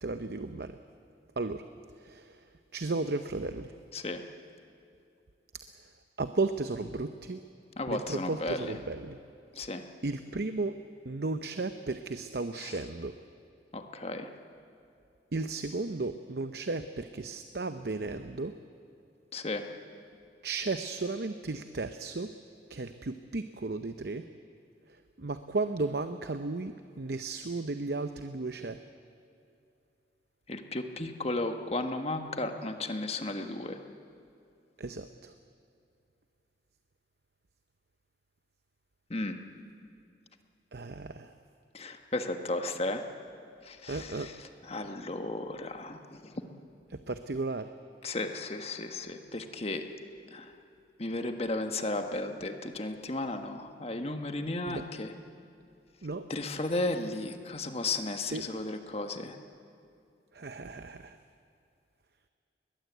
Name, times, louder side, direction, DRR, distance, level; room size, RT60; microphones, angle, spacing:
voice 1, 0.0-0.8 1.4-1.6 2.0-2.4 2.7-3.7 6.2-7.4 7.9-9.2 10.0-10.7 11.0-13.1 15.3-18.5 20.4-22.3 22.7-24.2 25.2-28.8 34.8-35.3 40.7-41.3 43.9-44.3 46.9-47.7 54.7-54.8 56.0-56.2 58.3-58.4 60.3-61.2, right 3 dB, 60° right, 9 dB, 0.7 m, -34 dB
voice 2, 7.8-8.8 9.5-9.8 12.6-12.8 13.7-14.3 19.3-19.7 30.5-33.8 39.1-39.4 41.7-43.0 43.6-46.3 48.0-49.9 50.3-50.5 51.0-55.1 56.3-59.4, left 2 dB, 35° left, 6 dB, 1.4 m, -34 dB
21.5 x 21.0 x 8.2 m, 2.6 s
head